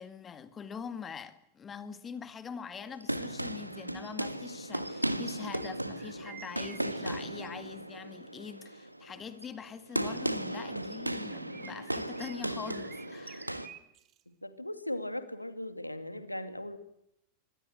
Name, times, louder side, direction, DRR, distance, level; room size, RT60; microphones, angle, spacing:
voice 1, 0.0-13.5, left 6 dB, 20° left, 2.0 m, -44 dB
sound 1, 2.8-13.7, right 1 dB, 85° right, 1.6 m, -36 dB
sound 2, 5.9-7.8 11.3-14.2, right 13 dB, 35° right, 1.6 m, -53 dB
voice 2, 14.3-16.8, left 1 dB, 85° left, 2.4 m, -38 dB
26.0 x 23.5 x 7.9 m
figure-of-eight pair, 90°, 0 cm